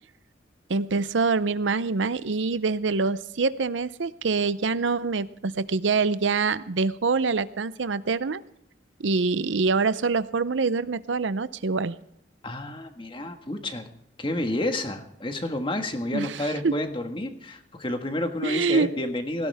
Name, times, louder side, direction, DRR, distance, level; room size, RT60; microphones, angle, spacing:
voice 1, 0.7-8.4 9.0-12.0 16.1-16.8 18.4-18.9, right 4 dB, 80° right, 16 dB, 0.6 m, -25 dB
voice 2, 12.4-13.9 14.2-19.5, left 1 dB, 25° left, 6 dB, 1.6 m, -30 dB
18.5 x 16.5 x 3.5 m, 0.73 s
head